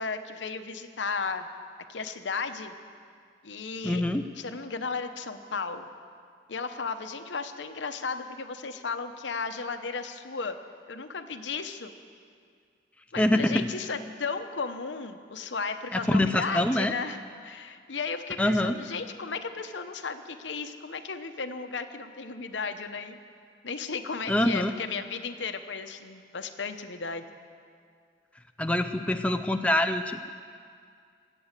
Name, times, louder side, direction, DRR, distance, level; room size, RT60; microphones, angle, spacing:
voice 1, 0.0-1.5 1.9-2.7 3.4-4.0 4.4-5.9 6.5-10.6 10.9-11.9 13.1-23.2 23.6-27.2, left 4 dB, 80° left, 8 dB, 0.9 m, -35 dB
voice 2, 3.8-4.2 13.2-13.7 15.9-16.9 18.4-18.8 24.3-24.7 28.6-30.3, left 1 dB, 5° left, 6 dB, 0.4 m, -25 dB
24.0 x 8.5 x 6.6 m, 2.2 s
head